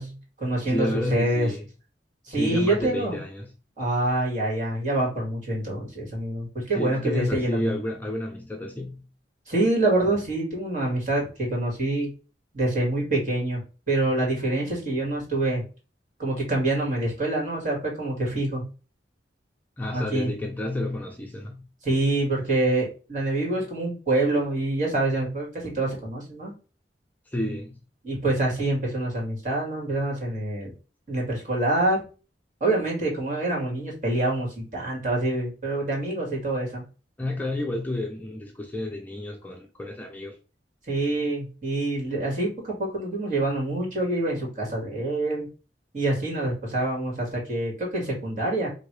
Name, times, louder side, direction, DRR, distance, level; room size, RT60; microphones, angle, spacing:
voice 1, 0.0-1.5 2.3-3.2 3.8-7.7 9.5-12.1 12.5-13.6 13.9-15.6 16.2-18.7 19.9-20.3 21.8-26.5 28.0-30.7 31.1-32.0 32.6-36.8 40.9-45.5 45.9-48.7, right 2 dB, 45° right, 2.2 m, -26 dB
voice 2, 0.7-1.7 2.3-3.5 6.7-9.1 19.8-21.7 27.3-27.8 37.2-40.4, left 1 dB, 10° left, 0.6 m, -31 dB
3.9 x 2.7 x 4.8 m
head